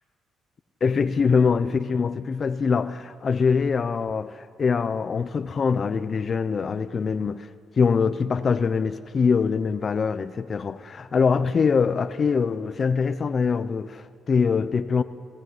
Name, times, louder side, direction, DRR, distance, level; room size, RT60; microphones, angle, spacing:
voice 1, 0.8-7.5 7.8-15.0, left 5 dB, 45° left, 0.8 m, -23 dB
28.5 x 15.5 x 9.6 m
cardioid pair, 90°, 0 cm